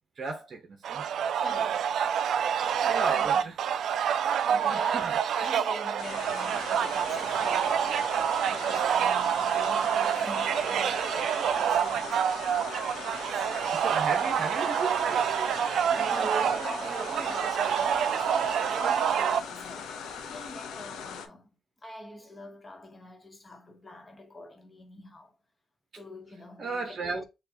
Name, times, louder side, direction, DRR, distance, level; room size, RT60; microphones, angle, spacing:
voice 1, 0.2-1.0 2.8-3.5 4.7-5.2 13.7-15.9 26.6-27.2, right 4 dB, 50° right, 0.8 m, -35 dB
sound 1, 0.8-19.4, right 8 dB, 75° right, 0.3 m, -27 dB
voice 2, 1.4-2.0 2.9-3.5 4.4-7.9 8.5-12.8 13.1-13.5 15.9-25.3 25.9-27.2, left 1 dB, 25° left, 1.1 m, -44 dB
sound 2, 6.0-21.3, left 6 dB, 90° left, 0.6 m, -40 dB
6.5 x 2.3 x 2.8 m
cardioid pair, 85°, 0 cm